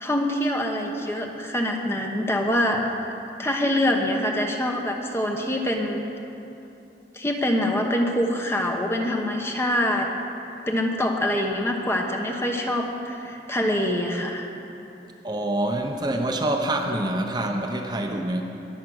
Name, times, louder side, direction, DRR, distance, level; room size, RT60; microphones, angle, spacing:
voice 1, 0.0-2.8 3.4-6.0 7.1-10.1 10.7-14.5, left 1 dB, 15° left, 2 dB, 1.1 m, -25 dB
voice 2, 15.2-18.4, right 1 dB, 25° right, 2 dB, 0.9 m, -26 dB
22.0 x 7.5 x 6.4 m, 2.8 s
head